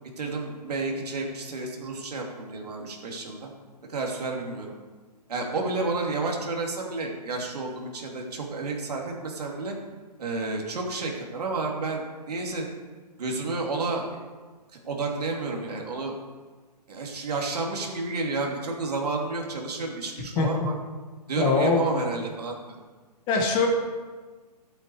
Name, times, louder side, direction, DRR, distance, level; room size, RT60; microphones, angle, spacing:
voice 1, 0.0-3.5 3.9-4.7 5.3-9.8 10.2-12.7 13.2-14.2 14.8-16.1 16.9-20.7 21.3-22.7, right 3 dB, 65° right, 0 dB, 2.7 m, -31 dB
voice 2, 21.4-21.9 23.3-23.7, left 4 dB, 20° left, 1 dB, 1.5 m, -22 dB
13.0 x 8.0 x 4.8 m, 1.4 s
hypercardioid pair, 150°, 21 cm